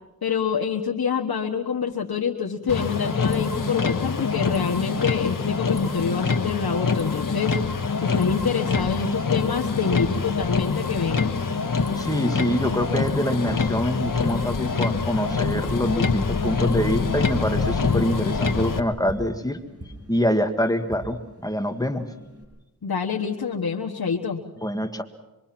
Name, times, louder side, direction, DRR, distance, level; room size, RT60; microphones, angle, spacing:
voice 1, 0.2-7.6 8.0-11.3 22.8-24.4, left 6 dB, 75° left, 0 dB, 1.4 m, -26 dB
Motor vehicle (road), 2.7-18.8, left 4 dB, 60° left, 1.5 m, -25 dB
Tap, 7.5-22.4, right 1 dB, 40° right, 7.1 m, -42 dB
voice 2, 12.0-19.6 20.1-22.1 24.6-25.0, equal, 10° left, 6 dB, 1.9 m, -25 dB
25.5 x 23.0 x 6.0 m, 1.0 s
wide cardioid pair, 55°, 37 cm